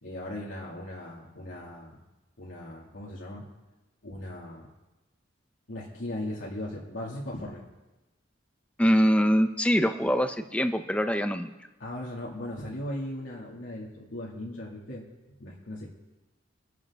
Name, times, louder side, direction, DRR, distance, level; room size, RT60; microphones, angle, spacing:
voice 1, 0.0-2.0 2.4-3.4 4.0-4.7 5.7-7.6 11.8-15.0 15.4-15.9, left 1 dB, 80° left, -6 dB, 2.5 m, -38 dB
voice 2, 8.8-11.5, equal, 5° left, 8 dB, 0.7 m, -23 dB
24.0 x 10.5 x 3.7 m, 1.1 s
head